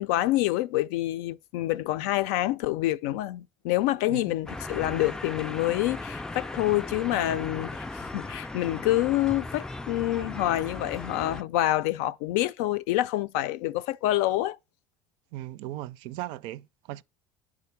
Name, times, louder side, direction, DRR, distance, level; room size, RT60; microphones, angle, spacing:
voice 1, 0.0-7.9 8.1-14.6, left 15 dB, 90° left, 0.5 m, -27 dB
sound 1, 4.5-11.4, left 2 dB, 10° left, 0.4 m, -37 dB
voice 2, 15.3-17.0, right 15 dB, 75° right, 0.4 m, -37 dB
9.3 x 3.7 x 5.9 m
cardioid pair, 130°, 8 cm